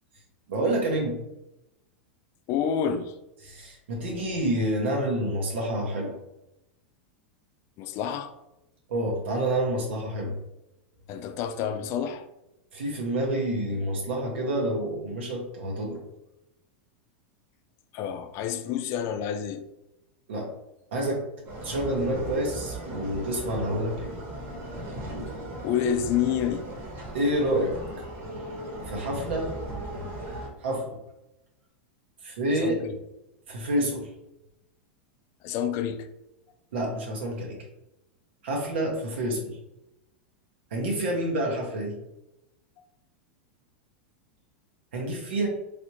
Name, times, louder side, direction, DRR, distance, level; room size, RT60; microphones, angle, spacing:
voice 1, 0.5-1.2 3.4-6.2 8.9-10.3 12.7-16.0 20.3-20.5 20.9-21.2 21.6-24.1 27.1-27.8 28.9-29.5 29.9-30.1 30.6-30.9 32.2-32.8 33.5-34.1 36.7-37.6 38.4-39.6 40.7-42.0 44.9-45.5, right 1 dB, 75° right, 0.8 m, -28 dB
voice 2, 2.5-3.1 7.8-8.3 11.1-12.3 17.9-19.6 25.6-26.6 32.6-32.9 35.4-36.1, left 8 dB, 45° left, 0.4 m, -28 dB
sound 1, 21.5-30.5, right 1 dB, 45° right, 1.0 m, -37 dB
3.2 x 2.5 x 2.9 m
hypercardioid pair, 105°, 6 cm